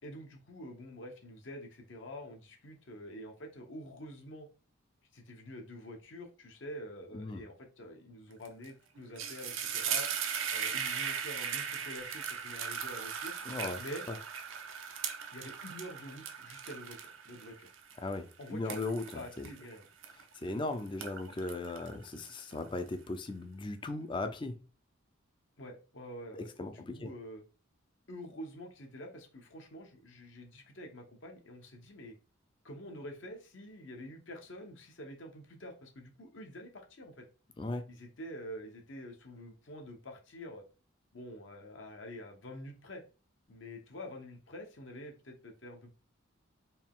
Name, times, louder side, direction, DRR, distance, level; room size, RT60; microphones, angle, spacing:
voice 1, 0.0-4.5 5.1-10.1 10.5-13.3 13.8-14.0 15.3-17.7 18.4-18.8 19.1-19.8 25.6-27.4 28.1-32.2 32.6-37.2 37.9-40.6 41.1-43.0 43.5-45.9, equal, 70° left, 0.9 m, -47 dB
sound 1, 8.4-8.7 9.0-20.5 20.9-22.8, right 7 dB, 75° right, 0.6 m, -38 dB
voice 2, 13.5-13.8 14.1-14.2 18.0-19.5 20.2-24.6 26.3-27.1 37.6-37.9, left 2 dB, 25° left, 0.4 m, -38 dB
4.2 x 2.4 x 3.6 m
head